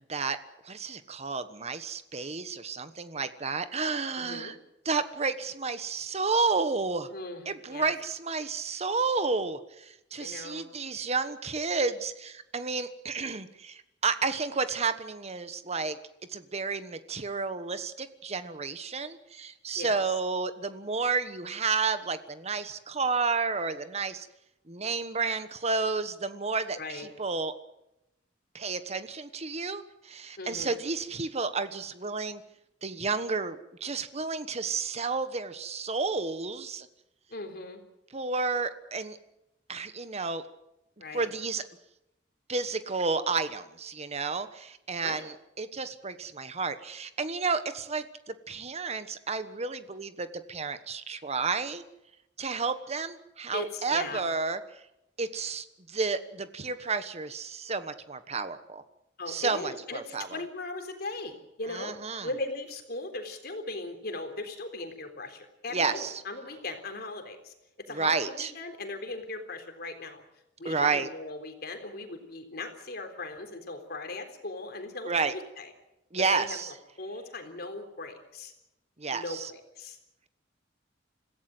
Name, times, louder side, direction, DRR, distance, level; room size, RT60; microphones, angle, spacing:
voice 1, 0.6-4.6 4.8-7.1 7.5-16.0 16.3-24.3 24.7-27.5 28.5-32.4 32.8-36.9 38.1-39.2 39.7-40.4 41.1-41.6 42.5-51.8 52.4-54.6 55.2-58.8 59.3-60.4 61.7-62.3 65.7-66.1 67.9-68.5 70.6-71.1 75.0-75.3 76.1-76.7 79.0-79.5, right 4 dB, 35° right, 11 dB, 1.3 m, -31 dB
voice 2, 4.2-4.6 7.1-7.5 7.7-7.9 10.1-10.7 19.8-20.0 26.8-27.1 30.4-30.8 37.3-37.8 41.0-41.3 45.0-45.3 53.5-54.2 59.2-61.9 62.2-67.5 67.9-70.2 70.6-75.7 76.3-76.6 77.0-78.5 79.1-80.0, left 2 dB, 60° left, 6 dB, 3.8 m, -38 dB
26.0 x 16.5 x 7.9 m, 0.89 s
head